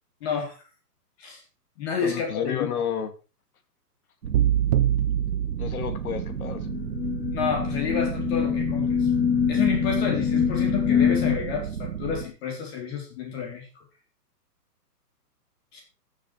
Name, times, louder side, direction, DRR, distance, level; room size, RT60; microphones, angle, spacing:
voice 1, 0.2-0.6 1.2-1.4 1.8-2.7 7.3-9.1 9.5-13.8 15.7-15.8, left 6 dB, 40° left, 1 dB, 4.0 m, -30 dB
voice 2, 2.0-3.1 5.6-6.7, left 8 dB, 60° left, 7 dB, 2.4 m, -31 dB
sound 1, 4.2-12.3, right 8 dB, 75° right, 1.4 m, -34 dB
sound 2, 4.3-6.5, right 11 dB, 25° right, 0.7 m, -25 dB
sound 3, 6.1-11.4, left 8 dB, 20° left, 2.3 m, -25 dB
14.5 x 7.3 x 4.8 m, 0.34 s
hypercardioid pair, 140°, 48 cm